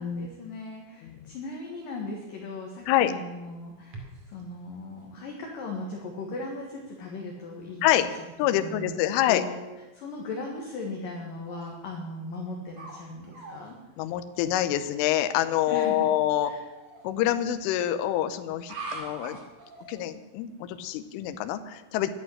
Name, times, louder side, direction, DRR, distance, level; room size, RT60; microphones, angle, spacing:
voice 1, 0.0-8.1 8.5-9.0 9.3-9.6 9.9-13.8 15.7-16.1 16.4-16.6, left 2 dB, 60° left, 0 dB, 2.6 m, -38 dB
sound 1, 2.8-4.4 5.1-5.2 5.9-6.0 6.6-6.9 7.3-7.4 7.6-7.9 8.4-8.5 11.5-11.7 12.3-13.0 13.2-13.7 15.1-15.4 16.5-17.0 18.6-20.1, right 3 dB, 45° right, 2.7 m, -43 dB
voice 2, 8.4-9.4 14.0-16.5 17.0-19.4 19.9-22.1, left 12 dB, 80° left, 9 dB, 3.3 m, -26 dB
11.5 x 11.5 x 10.0 m, 1.1 s
omnidirectional pair, 5.8 m